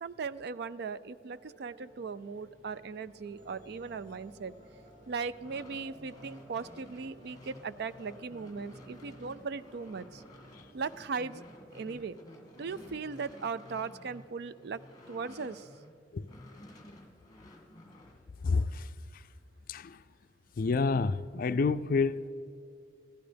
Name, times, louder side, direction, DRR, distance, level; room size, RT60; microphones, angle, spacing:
voice 1, 0.0-4.5 5.1-10.2 10.7-11.4 11.7-12.1 12.6-14.8 15.1-15.7, right 5 dB, 65° right, 0.4 m, -38 dB
sound 1, 1.2-14.1, right 2 dB, 45° right, 2.7 m, -57 dB
sound 2, 5.3-15.9 16.3-18.2, left 1 dB, 20° left, 1.8 m, -53 dB
voice 2, 18.4-19.2 19.7-20.0 20.6-22.3, left 4 dB, 55° left, 0.4 m, -29 dB
15.0 x 12.0 x 5.1 m
head